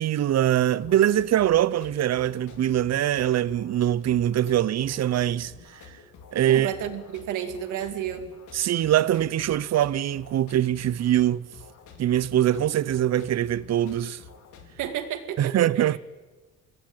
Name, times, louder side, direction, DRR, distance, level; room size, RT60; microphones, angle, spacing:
voice 1, 0.0-5.8 6.3-6.7 8.5-11.5 12.0-14.2 15.4-16.0, right 12 dB, 60° right, 0.8 m, -23 dB
sound 1, 0.8-14.9, left 6 dB, 80° left, 4.2 m, -49 dB
voice 2, 6.5-8.3 14.8-16.0, right 10 dB, 90° right, 2.4 m, -32 dB
25.5 x 19.0 x 9.0 m
cardioid pair, 90°, 30 cm